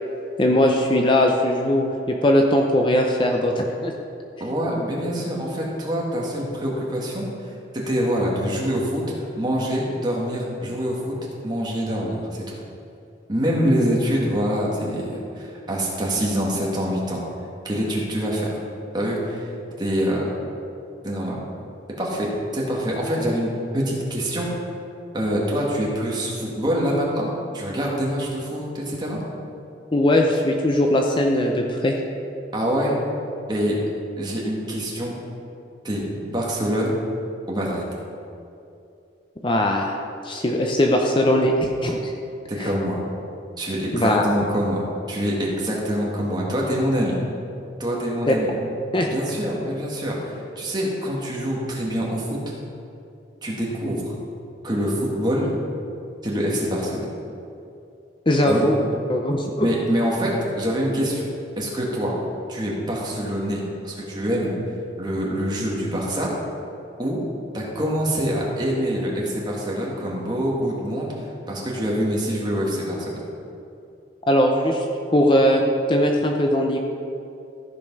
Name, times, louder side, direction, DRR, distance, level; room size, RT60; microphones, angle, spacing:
voice 1, 0.4-3.9 29.9-32.0 39.4-40.0 40.2-42.1 42.6-42.7 43.9-44.2 48.3-48.4 48.9-49.1 58.3-58.8 59.1-59.7 74.3-74.8 75.1-76.8, left 1 dB, 25° left, 1 dB, 0.6 m, -20 dB
voice 2, 4.4-9.0 9.4-11.2 11.4-12.4 13.3-17.2 17.6-18.6 18.9-19.5 19.8-20.3 21.0-21.4 22.0-24.5 25.1-29.2 32.5-33.0 33.5-33.8 34.2-35.1 35.8-37.0 37.5-37.8 42.5-43.0 43.6-47.2 47.8-48.5 49.0-52.4 53.4-54.0 54.6-55.5 56.2-57.1 58.5-58.7 59.6-61.3 61.6-62.1 62.5-64.6 65.0-66.3 67.0-67.2 67.5-71.1 71.5-73.2, equal, 25° right, -4 dB, 1.9 m, -25 dB
14.0 x 5.4 x 5.4 m, 2.6 s
head